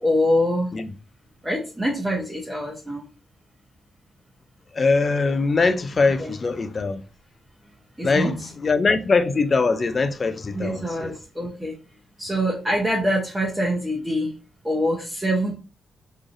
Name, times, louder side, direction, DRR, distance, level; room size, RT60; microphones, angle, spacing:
voice 1, 0.0-0.7 1.4-3.0 6.2-6.3 8.0-8.3 10.5-11.7 12.2-14.3 14.6-15.5, equal, 10° right, 0.9 m, -24 dB
voice 2, 4.7-7.0 8.0-11.2, left 4 dB, 35° left, 0.4 m, -22 dB
3.8 x 3.1 x 2.5 m
cardioid pair, 100°, 0 cm